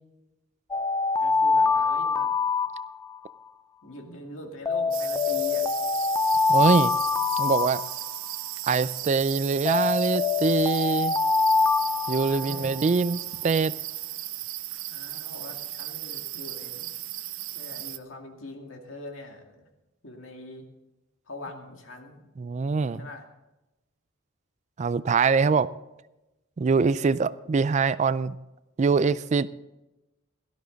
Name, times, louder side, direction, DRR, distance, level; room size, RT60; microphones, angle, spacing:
Alarm, 0.7-3.3 4.7-8.3 9.7-12.9, left 4 dB, 15° left, 0.5 m, -25 dB
voice 1, 1.2-2.3 3.8-5.7 12.2-12.8 14.9-16.9 17.5-19.7 20.0-20.6 21.3-22.3 22.8-23.3, left 2 dB, 70° left, 3 dB, 2.3 m, -42 dB
sound 1, 4.9-18.0, right 15 dB, 75° right, 0.7 m, -36 dB
voice 2, 6.5-6.9 7.4-7.8 8.6-11.1 12.1-13.7 22.4-23.0 24.8-25.7 26.6-28.4 28.8-29.5, right 4 dB, 35° right, 17 dB, 0.3 m, -23 dB
17.0 x 12.5 x 4.0 m, 0.99 s
head